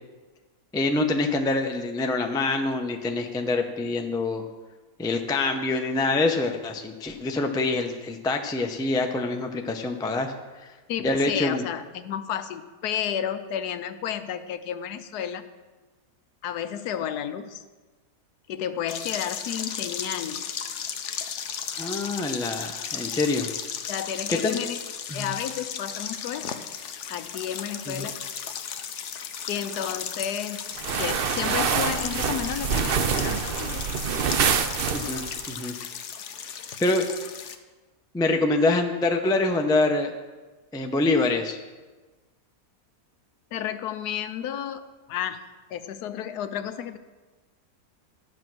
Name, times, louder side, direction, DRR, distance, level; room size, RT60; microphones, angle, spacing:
voice 1, 0.7-4.4 5.0-10.3 10.6-10.7 11.0-11.6 21.7-23.5 24.3-24.6 25.1-25.3 27.9-28.1 34.9-35.7 36.8-37.0 38.1-40.1 40.7-41.6, left 2 dB, 5° left, 4 dB, 0.3 m, -25 dB
voice 2, 10.9-15.5 16.4-17.6 18.5-20.5 23.9-24.8 25.1-26.7 27.1-28.2 29.5-30.7 31.0-34.0 43.5-45.4 45.7-47.0, left 9 dB, 80° left, 11 dB, 1.2 m, -32 dB
sound 1, 18.9-37.5, left 7 dB, 55° left, 0.9 m, -35 dB
sound 2, 30.8-35.4, right 7 dB, 80° right, 0.5 m, -26 dB
11.5 x 7.6 x 6.1 m, 1.3 s
omnidirectional pair, 1.7 m